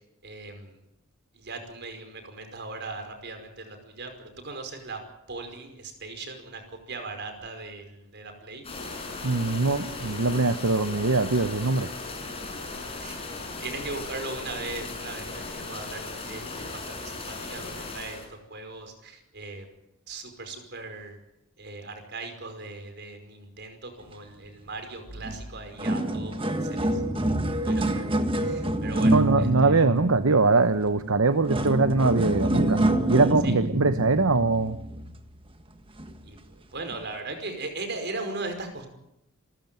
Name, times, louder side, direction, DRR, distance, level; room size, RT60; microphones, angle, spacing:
voice 1, 0.2-0.7 1.3-5.0 5.3-6.6 6.9-8.6 13.0-13.2 13.6-18.2 18.5-19.7 20.1-21.2 21.6-26.3 26.6-27.0 27.6-28.0 28.4-29.5 33.4-33.5 36.2-36.4 36.7-38.9, right 3 dB, 55° right, 6 dB, 5.2 m, -38 dB
sound 1, 8.6-18.3, left 3 dB, 30° left, 6.2 m, -37 dB
voice 2, 9.2-11.9 29.0-32.8 33.1-34.8, right 3 dB, 75° right, 10 dB, 1.0 m, -22 dB
sound 2, 25.2-25.4 25.6-35.3 36.0-36.2 36.9-37.0, right 1 dB, 25° right, 1.6 m, -27 dB
28.5 x 14.0 x 9.2 m, 0.85 s
head